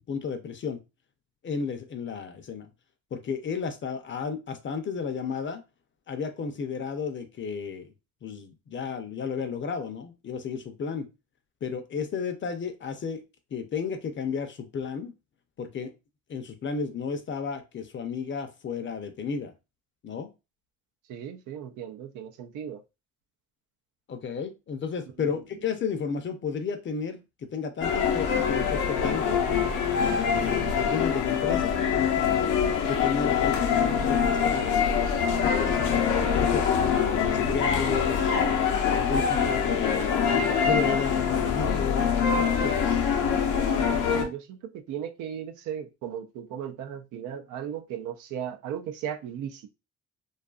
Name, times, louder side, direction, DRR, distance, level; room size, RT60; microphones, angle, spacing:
voice 1, 0.1-0.8 1.4-2.7 3.1-5.6 6.1-7.9 8.2-11.1 11.6-13.2 13.5-15.1 15.6-15.9 16.3-19.5 20.0-20.3 24.1-29.4 30.0-35.0 35.4-36.7 37.1-38.3 38.8-40.2 40.6-42.8, left 6 dB, 40° left, 0.5 m, -33 dB
voice 2, 21.1-22.8 25.2-25.4 44.1-49.7, right 9 dB, 85° right, 0.5 m, -36 dB
sound 1, 27.8-44.3, left 7 dB, 80° left, 0.6 m, -24 dB
2.6 x 2.4 x 2.3 m
cardioid pair, 90°, 30 cm